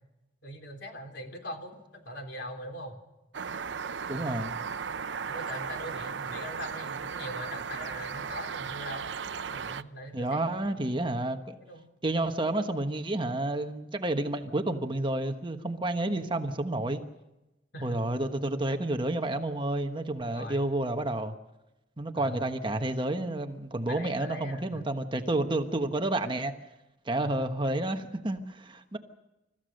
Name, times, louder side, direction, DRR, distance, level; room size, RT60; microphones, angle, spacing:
voice 1, 0.4-3.0 4.1-4.3 5.3-9.1 9.5-10.9 11.6-11.9 17.7-18.0 20.3-20.7 22.2-22.4 23.9-24.8 27.2-27.5, equal, 70° left, 3.8 m, -41 dB
sound 1, 3.3-9.8, right 6 dB, 80° right, 0.6 m, -36 dB
voice 2, 4.0-4.5 10.1-11.5 12.0-17.0 17.8-21.3 22.0-26.5 27.0-29.0, right 2 dB, 30° right, 1.3 m, -30 dB
29.0 x 15.0 x 6.5 m
head